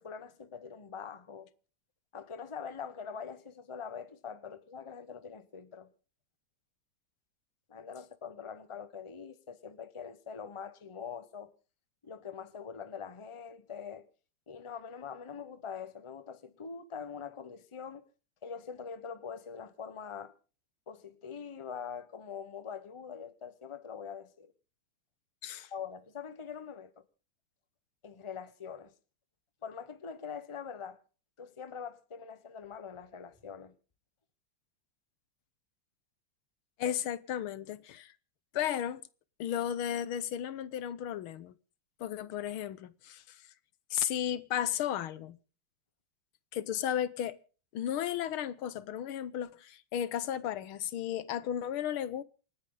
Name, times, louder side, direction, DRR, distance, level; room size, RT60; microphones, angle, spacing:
voice 1, 0.0-1.5 2.1-5.9 7.7-11.5 12.0-14.1 14.5-18.0 18.4-20.3 20.9-24.5 25.7-27.0 28.0-28.9 29.6-31.0 31.4-33.7, left 6 dB, 20° left, 0.8 m, -43 dB
voice 2, 36.8-38.1 38.5-39.0 39.4-41.5 42.0-43.4 43.9-45.4 46.5-47.4 47.7-52.2, left 10 dB, 90° left, 1.8 m, -34 dB
28.0 x 9.7 x 3.9 m
omnidirectional pair, 2.3 m